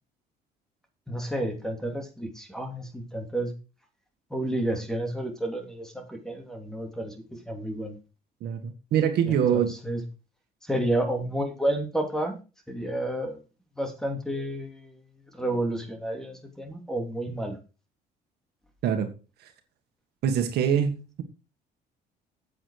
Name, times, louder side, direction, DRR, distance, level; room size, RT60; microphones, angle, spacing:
voice 1, 1.1-3.5 4.3-8.0 9.2-10.0 10.6-12.4 12.7-13.4 13.8-15.0 15.4-17.6, right 1 dB, 5° left, 2.7 m, -30 dB
voice 2, 8.4-9.7 18.8-19.1 20.2-21.2, right 8 dB, 75° right, 1.8 m, -24 dB
8.5 x 7.5 x 4.8 m
cardioid pair, 110°, 17 cm